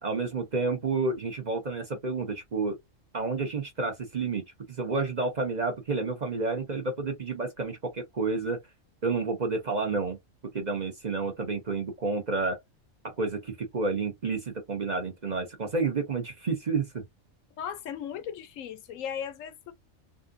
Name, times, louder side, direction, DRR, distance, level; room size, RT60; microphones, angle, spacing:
voice 1, 0.0-2.8 3.1-4.4 4.7-8.6 9.0-10.2 10.5-12.6 13.0-17.0, right 4 dB, 35° right, 0.9 m, -30 dB
voice 2, 17.6-19.7, left 8 dB, 75° left, 1.0 m, -37 dB
3.7 x 2.4 x 2.5 m
omnidirectional pair, 1.4 m